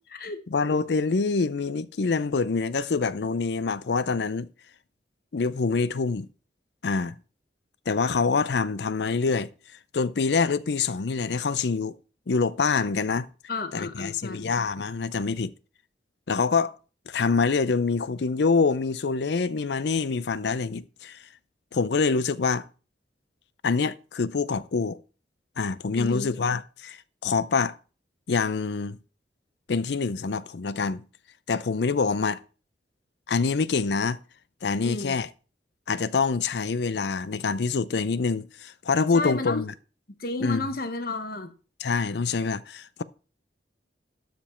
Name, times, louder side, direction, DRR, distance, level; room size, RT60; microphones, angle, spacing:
voice 1, 0.5-4.5 5.3-6.3 6.8-7.2 7.9-9.5 9.9-12.0 12.3-13.3 13.7-15.5 16.3-16.7 17.1-21.2 21.7-22.6 23.6-25.0 25.6-27.7 28.3-29.0 29.7-31.0 31.5-32.4 33.3-34.2 34.6-35.3 35.9-39.7 40.4-40.6 41.8-43.0, left 4 dB, 70° left, 0.5 m, -25 dB
voice 2, 13.5-14.5 26.0-26.3 34.8-35.2 39.1-39.6 40.1-41.5, left 2 dB, 55° left, 1.1 m, -32 dB
12.5 x 5.2 x 4.3 m
head